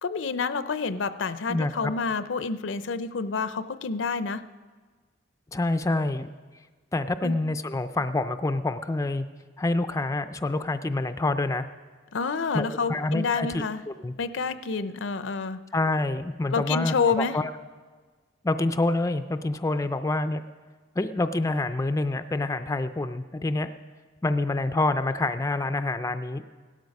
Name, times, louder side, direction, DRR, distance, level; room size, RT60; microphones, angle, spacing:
voice 1, 0.0-4.4 7.2-7.3 12.1-13.8 14.2-15.6 16.5-17.4, left 5 dB, 70° left, 13 dB, 0.6 m, -28 dB
voice 2, 1.5-1.9 5.5-6.3 6.9-9.2 9.6-11.7 12.5-14.1 15.7-17.5 18.4-20.4 21.0-23.7 24.2-26.4, left 2 dB, 15° left, 9 dB, 0.4 m, -27 dB
17.0 x 12.5 x 5.3 m, 1.4 s
head